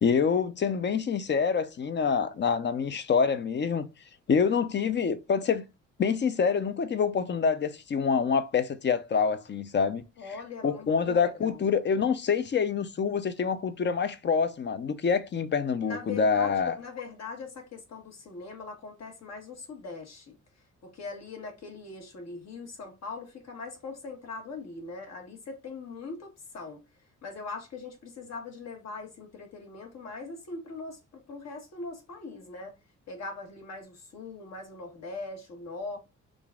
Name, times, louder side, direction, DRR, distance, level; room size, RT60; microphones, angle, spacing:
voice 1, 0.0-3.9 4.3-5.6 6.0-10.0 10.6-16.8, left 6 dB, 35° left, 0.6 m, -26 dB
voice 2, 10.2-11.6 15.8-20.4 20.8-26.8 27.2-32.8 33.1-36.0, left 3 dB, 60° left, 1.5 m, -41 dB
3.8 x 2.4 x 3.5 m
cardioid pair, 90°, 30 cm